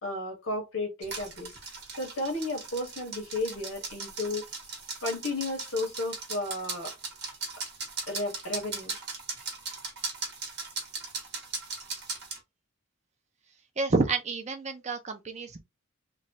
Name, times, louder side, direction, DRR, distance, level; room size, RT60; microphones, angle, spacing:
voice 1, 0.0-1.5 2.0-4.4 5.0-6.9 8.1-8.9, left 2 dB, 80° left, 1.3 m, -33 dB
sound 1, 1.0-12.4, right 4 dB, 50° right, 1.0 m, -38 dB
voice 2, 13.8-15.6, right 3 dB, 30° right, 0.5 m, -29 dB
3.0 x 2.3 x 2.7 m
head